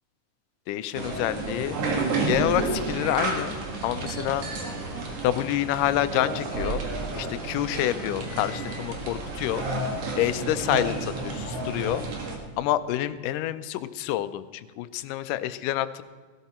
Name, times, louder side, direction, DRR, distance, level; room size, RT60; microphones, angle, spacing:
voice 1, 0.7-1.8 2.3-3.6 3.8-4.5 5.2-6.8 7.1-9.6 10.2-12.0 12.6-14.4 14.8-16.0, left 13 dB, 85° left, 13 dB, 2.2 m, -27 dB
sound 1, 0.9-12.4, right 3 dB, 50° right, 2.7 m, -31 dB
17.0 x 13.0 x 4.3 m, 1.5 s
omnidirectional pair, 3.7 m